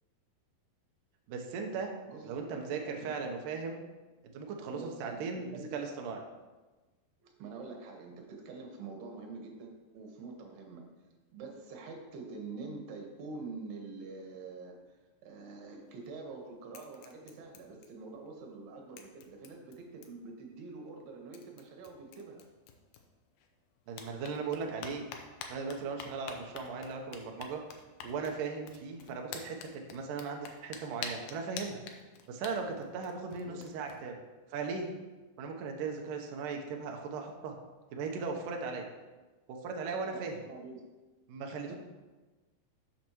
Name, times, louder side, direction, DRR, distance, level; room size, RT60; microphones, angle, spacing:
voice 1, 1.3-1.9 2.2-3.8 4.3-6.2 23.9-25.1 25.5-27.6 28.0-31.8 32.3-34.1 34.5-34.9 35.4-37.6 37.9-38.9 39.5-40.4 41.3-41.8, right 5 dB, 85° right, 2 dB, 1.9 m, -37 dB
voice 2, 2.1-2.6 2.9-3.2 4.7-5.8 7.2-10.9 11.3-22.4 33.4-33.6 40.1-40.8 41.3-41.4 41.7-41.8, right 3 dB, 70° right, 1 dB, 3.1 m, -46 dB
sound 1, 15.8-16.4 16.7-18.3 18.5-18.6 19.0-20.3 21.0-21.1 21.3-23.5 23.9-34.0, left 6 dB, 80° left, 2.4 m, -48 dB
11.5 x 7.2 x 3.0 m, 1.2 s
omnidirectional pair, 5.1 m